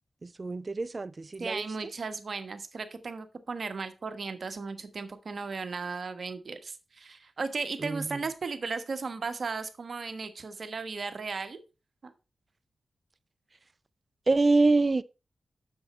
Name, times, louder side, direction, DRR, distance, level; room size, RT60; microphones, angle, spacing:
voice 1, 0.2-1.7 7.8-8.2 14.3-15.0, right 3 dB, 45° right, 0.4 m, -26 dB
voice 2, 1.4-11.6, right 4 dB, 65° right, 1.2 m, -36 dB
7.8 x 6.9 x 4.2 m
cardioid pair, 45°, 0 cm